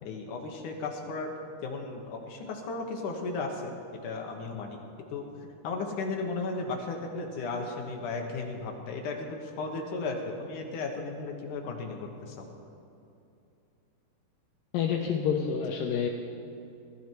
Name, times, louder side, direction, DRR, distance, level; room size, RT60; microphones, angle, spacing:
voice 1, 0.0-1.3 1.6-3.8 4.0-4.8 5.1-5.3 5.6-12.5, left 3 dB, 65° left, 2 dB, 2.1 m, -35 dB
voice 2, 14.7-16.1, left 7 dB, 90° left, 1 dB, 2.0 m, -28 dB
19.5 x 13.5 x 4.6 m, 2.6 s
omnidirectional pair, 5.0 m